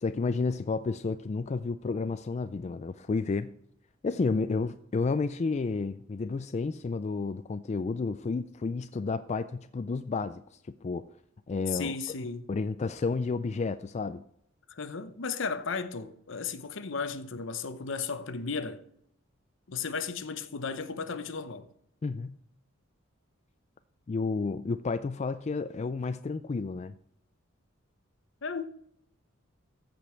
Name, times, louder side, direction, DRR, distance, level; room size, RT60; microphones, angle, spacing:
voice 1, 0.0-3.5 4.0-11.1 11.5-12.0 12.5-14.2 22.0-22.4 24.1-26.9, left 4 dB, 35° left, 0.3 m, -31 dB
voice 2, 11.7-12.5 14.7-18.8 19.7-21.7 28.4-28.6, left 5 dB, 65° left, 0.8 m, -35 dB
14.5 x 5.3 x 4.4 m
head